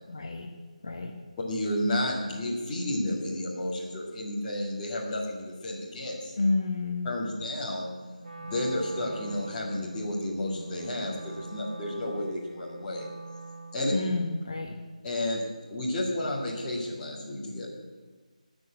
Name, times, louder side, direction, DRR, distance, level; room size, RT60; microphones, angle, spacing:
voice 1, 0.1-0.5 0.8-1.2 6.4-7.1 13.9-14.8, left 3 dB, 40° left, 2 dB, 1.1 m, -29 dB
voice 2, 1.5-6.3 7.0-7.9 8.4-13.1 13.7-13.9 15.0-15.4 15.7-17.7, left 1 dB, 10° left, -9 dB, 2.0 m, -31 dB
Wind instrument woodwind instrument, 8.2-14.2, right 3 dB, 65° right, 1.5 m, -44 dB
18.5 x 6.3 x 8.9 m, 1.4 s
figure-of-eight pair, 180°, 4 cm